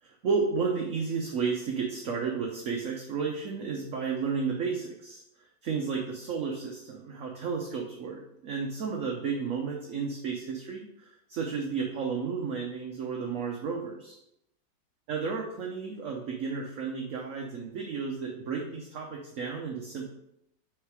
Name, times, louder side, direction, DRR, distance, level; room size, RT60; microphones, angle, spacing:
voice 1, 0.0-5.2 5.6-14.2 15.1-20.0, right 5 dB, 60° right, 0 dB, 1.0 m, -32 dB
6.7 x 3.7 x 4.8 m, 0.80 s
omnidirectional pair, 1.9 m